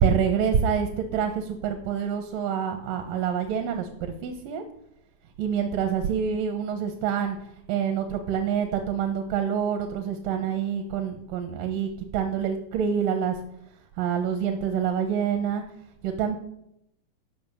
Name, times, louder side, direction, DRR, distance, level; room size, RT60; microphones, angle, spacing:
voice 1, 0.0-4.6 5.4-7.4 7.7-13.4 14.0-15.6 16.0-16.4, right 7 dB, 90° right, 5 dB, 2.6 m, -26 dB
11.0 x 5.8 x 7.0 m, 0.78 s
omnidirectional pair, 3.8 m